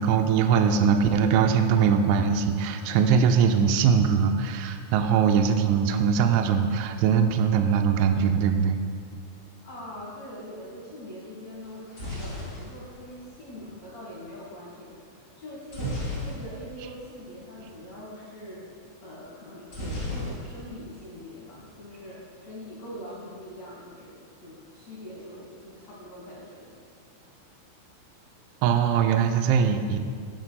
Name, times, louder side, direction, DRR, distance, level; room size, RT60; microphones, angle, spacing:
voice 1, 0.0-8.8 15.8-15.9 28.6-30.0, right 7 dB, 85° right, 5 dB, 2.9 m, -22 dB
voice 2, 9.6-18.7 19.0-26.8, equal, 75° left, -5 dB, 1.5 m, -43 dB
sound 1, 11.6-13.7 15.7-16.8 17.1-17.3 17.5-17.8 19.7-20.8 21.1-21.8, left 2 dB, 20° left, 2.2 m, -35 dB
16.5 x 11.0 x 2.3 m, 2.2 s
omnidirectional pair, 5.6 m